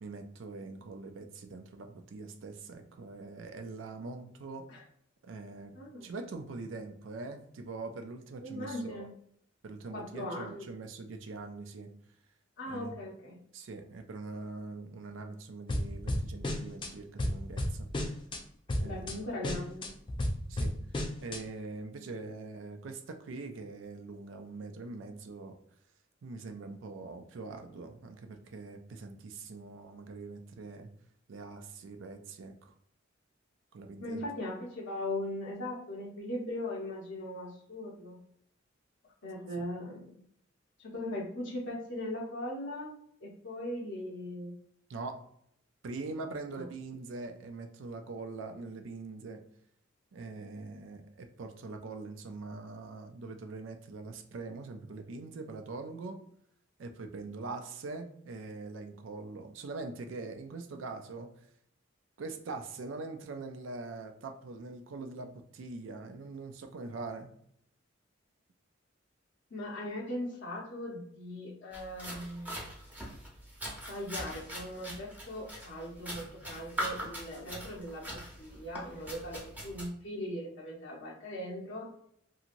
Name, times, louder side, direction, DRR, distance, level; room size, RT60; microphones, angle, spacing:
voice 1, 0.0-4.7 5.2-9.1 9.6-11.9 12.7-12.9 13.5-17.9 18.8-19.2 20.5-20.8 21.2-25.6 26.2-30.9 31.3-32.7 33.7-34.2 39.6-39.7 44.9-45.2 45.8-49.4 50.1-56.2 56.8-61.3 62.2-67.3, right 3 dB, 70° right, 6 dB, 0.4 m, -43 dB
voice 2, 5.7-6.1 8.4-9.1 9.9-10.7 12.6-13.4 18.8-19.9 34.0-38.2 39.2-40.2 40.8-42.9 43.2-44.6 46.5-46.6 69.5-72.6 73.9-81.9, left 1 dB, 65° left, -3 dB, 0.7 m, -39 dB
sound 1, 15.7-16.9 17.2-18.4 18.7-19.1 19.4-21.4, left 1 dB, 25° left, 0.4 m, -33 dB
sound 2, 71.7-79.9, equal, 10° right, 0.8 m, -42 dB
2.8 x 2.7 x 2.5 m, 0.69 s
head